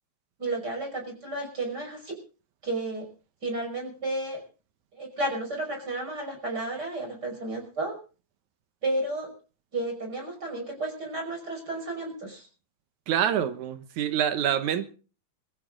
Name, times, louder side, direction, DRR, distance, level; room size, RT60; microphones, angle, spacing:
voice 1, 0.4-2.1 2.6-3.0 3.4-4.4 4.9-7.9 8.8-9.3 9.7-12.5, right 2 dB, 35° right, 2 dB, 6.2 m, -32 dB
voice 2, 13.1-14.8, right 9 dB, 80° right, 10 dB, 2.5 m, -26 dB
22.0 x 15.0 x 3.9 m, 0.37 s
omnidirectional pair, 3.3 m